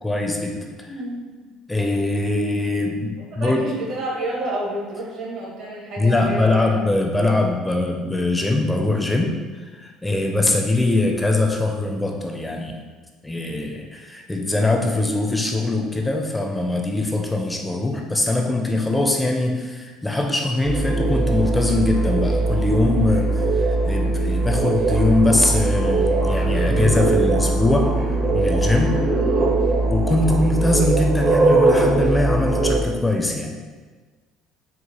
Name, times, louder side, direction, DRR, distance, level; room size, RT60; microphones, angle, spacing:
voice 1, 0.0-0.9 1.7-3.6 6.0-12.8 13.2-27.9 28.3-29.0 29.9-33.6, left 2 dB, 10° left, 2 dB, 0.4 m, -22 dB
voice 2, 0.8-1.3 3.3-6.8 10.1-10.3 30.2-30.5, right 1 dB, 65° right, -4 dB, 1.2 m, -30 dB
sound 1, 20.6-32.8, right 2 dB, 50° right, 0.7 m, -20 dB
4.6 x 2.1 x 2.8 m, 1.4 s
supercardioid pair, 85°, 0 cm